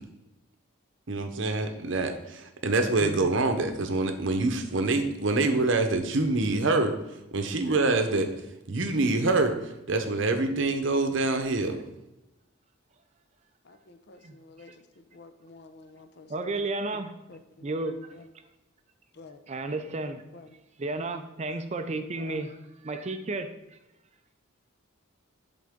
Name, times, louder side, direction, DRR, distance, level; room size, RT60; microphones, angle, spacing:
voice 1, 1.1-6.9 7.3-8.3 8.7-11.8, right 2 dB, 60° right, 6 dB, 0.8 m, -25 dB
voice 2, 3.0-3.4 14.2-14.4 14.7-14.8 16.3-17.2 17.6-18.2 19.5-20.2 20.8-22.5 22.8-23.8, right 2 dB, 30° right, 8 dB, 0.4 m, -33 dB
voice 3, 13.6-16.6 16.9-17.0 17.3-18.3 19.1-19.4 20.3-20.6 21.0-21.3 22.1-22.4, left 3 dB, 50° left, 8 dB, 0.6 m, -50 dB
11.0 x 3.8 x 3.6 m, 0.95 s
head